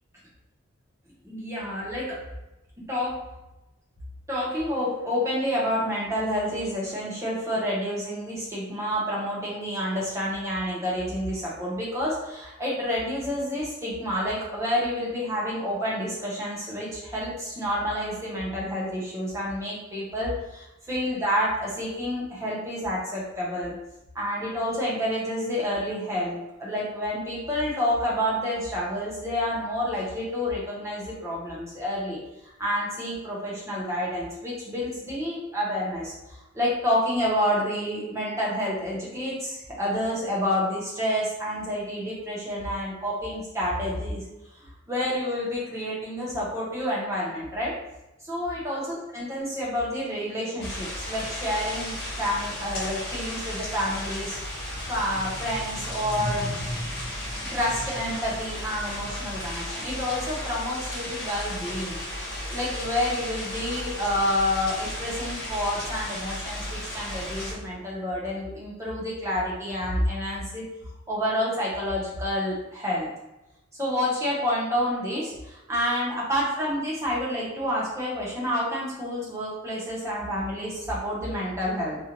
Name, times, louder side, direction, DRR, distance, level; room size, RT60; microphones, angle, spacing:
voice 1, 1.2-2.2 2.9-3.3 4.3-23.8 24.1-44.2 44.6-47.8 48.3-54.4 54.9-56.6 57.5-62.0 62.5-70.6 71.1-73.1 73.8-82.0, equal, 15° right, -6 dB, 0.8 m, -29 dB
sound 1, 50.6-67.5, left 1 dB, 45° left, 1.0 m, -34 dB
2.5 x 2.4 x 2.9 m, 0.95 s
head